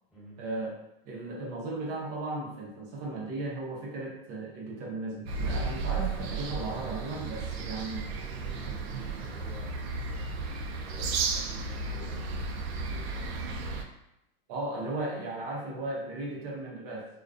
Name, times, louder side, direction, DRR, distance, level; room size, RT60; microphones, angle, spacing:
voice 1, 0.4-0.7 1.0-8.1 14.5-17.1, right 2 dB, 35° right, -3 dB, 0.6 m, -36 dB
sound 1, 5.3-13.8, right 4 dB, 85° right, 0.5 m, -34 dB
voice 2, 8.0-10.5 10.8-13.8, right 1 dB, 5° right, -13 dB, 1.1 m, -50 dB
2.3 x 2.2 x 2.4 m, 0.85 s
supercardioid pair, 160°, 31 cm